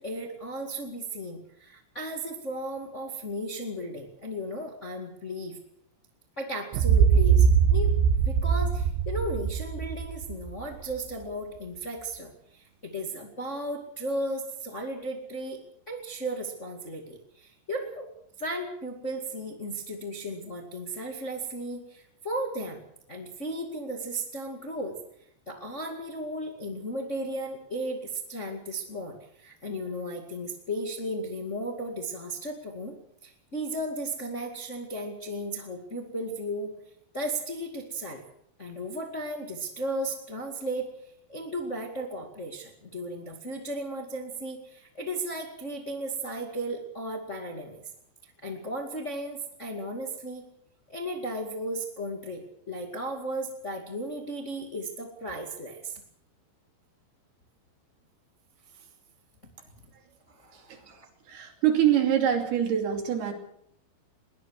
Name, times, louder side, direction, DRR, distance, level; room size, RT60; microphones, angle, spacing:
voice 1, 0.0-5.6 6.4-8.0 8.2-15.6 15.9-18.1 18.4-22.8 23.1-25.0 25.4-36.7 37.1-38.2 38.6-40.9 41.3-47.8 48.2-50.4 50.9-56.0 58.7-58.9 60.3-61.1, right 1 dB, 25° left, 2 dB, 1.5 m, -35 dB
sound 1, 6.7-10.6, right 7 dB, 90° right, 3.3 m, -22 dB
voice 2, 61.3-63.3, right 10 dB, 70° right, 4 dB, 4.7 m, -25 dB
22.0 x 19.0 x 6.4 m, 0.71 s
omnidirectional pair, 4.8 m